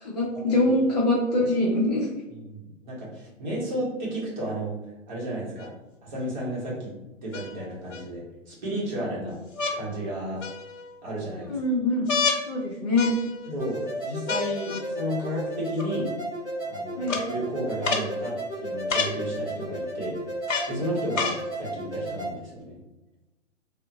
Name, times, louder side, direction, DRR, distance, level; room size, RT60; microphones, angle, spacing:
voice 1, 0.0-2.1 11.5-12.1 12.5-13.1 17.0-17.2, left 2 dB, 35° left, -5 dB, 0.7 m, -24 dB
voice 2, 2.3-4.8 5.1-5.7 6.0-6.9 7.2-9.4 9.7-10.4 11.0-11.6 13.4-16.1 16.7-20.2 20.7-22.8, equal, 40° right, -5 dB, 1.3 m, -33 dB
sound 1, 5.6-5.7 7.3-8.0 9.5-9.8 10.4-10.9 12.1-12.4 13.0-13.5 14.3-14.8 15.8-15.9 17.1-17.2 17.8-18.1 18.9-19.2 20.5-20.7 21.1-21.4 22.3-22.4, left 5 dB, 80° left, 0.8 m, -28 dB
sound 2, 13.6-22.3, right 1 dB, 10° left, 1.2 m, -34 dB
3.7 x 2.1 x 2.8 m, 1.0 s
hypercardioid pair, 160°, 38 cm